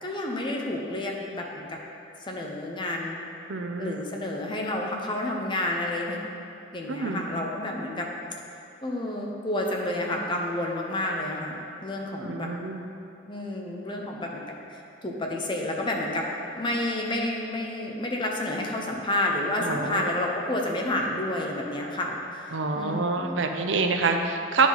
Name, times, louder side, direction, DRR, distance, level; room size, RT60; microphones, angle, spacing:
voice 1, 0.0-1.8 2.3-3.2 3.8-6.3 6.7-8.1 8.8-11.6 11.8-12.5 13.3-14.4 14.7-16.3 16.5-23.4, left 1 dB, 25° left, 0 dB, 0.7 m, -30 dB
voice 2, 3.5-4.0 6.9-7.2 12.1-12.8 19.6-20.0 22.5-24.7, right 4 dB, 85° right, 5 dB, 0.6 m, -27 dB
9.9 x 5.0 x 4.0 m, 2.8 s
head